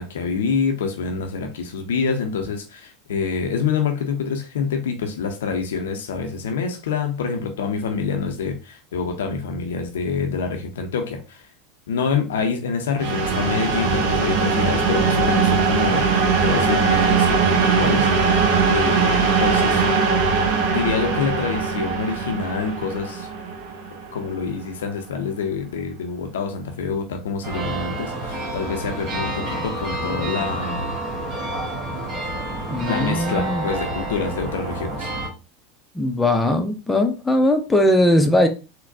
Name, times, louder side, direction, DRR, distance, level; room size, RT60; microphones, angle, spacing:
voice 1, 0.0-11.5 11.9-16.1 16.4-19.9 20.7-23.3 24.1-30.8 32.8-35.1, left 5 dB, 70° left, 0.5 m, -26 dB
sound 1, 13.0-24.6, right 5 dB, 55° right, 0.6 m, -20 dB
sound 2, 27.4-35.3, right 1 dB, 40° right, 1.2 m, -29 dB
voice 2, 32.7-33.6 36.0-38.5, left 1 dB, 10° left, 0.5 m, -19 dB
3.9 x 2.1 x 2.6 m
figure-of-eight pair, 80°, 0 cm